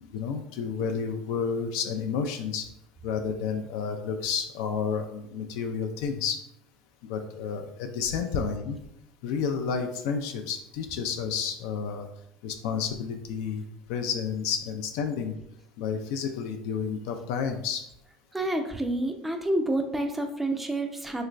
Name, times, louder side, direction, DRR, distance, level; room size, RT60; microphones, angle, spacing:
voice 1, 0.0-2.7 3.0-6.4 7.1-8.8 9.2-12.1 12.4-15.3 15.8-17.8, left 6 dB, 75° left, 5 dB, 0.3 m, -31 dB
voice 2, 18.3-21.2, right 1 dB, 5° right, 4 dB, 0.4 m, -28 dB
3.2 x 3.0 x 2.5 m, 0.80 s
supercardioid pair, 120°, 2 cm